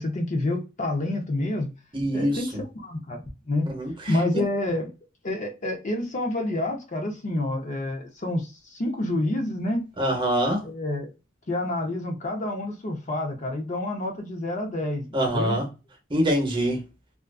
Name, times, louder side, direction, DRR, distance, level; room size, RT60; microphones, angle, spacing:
voice 1, 0.0-1.7 2.1-3.7 4.1-4.9 5.2-9.8 10.6-11.1 11.5-15.6, left 1 dB, 40° left, 0.6 m, -28 dB
voice 2, 1.9-2.4 3.7-3.9 4.3-4.4 10.0-10.6 15.1-15.7 16.1-16.8, equal, 25° right, 0.8 m, -24 dB
2.4 x 2.3 x 2.3 m
head